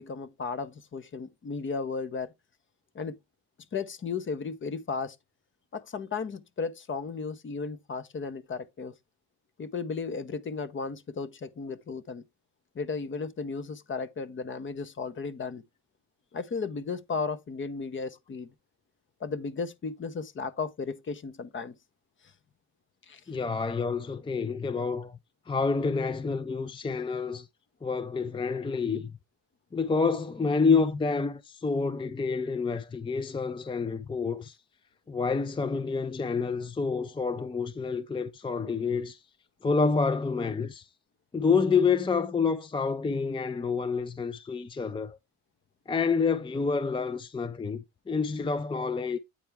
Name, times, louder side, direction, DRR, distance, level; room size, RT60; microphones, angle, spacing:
voice 1, 0.0-2.3 2.9-3.1 3.7-5.2 5.7-8.9 9.6-12.2 12.7-15.6 16.3-18.5 19.2-21.8 23.1-23.2, left 4 dB, 40° left, 0.9 m, -35 dB
voice 2, 23.3-25.2 25.5-27.5 27.8-29.1 29.7-34.6 35.1-39.2 39.6-40.9 41.3-45.2 45.9-49.2, left 5 dB, 15° left, 0.5 m, -28 dB
8.5 x 4.5 x 3.4 m
cardioid pair, 90°, 30 cm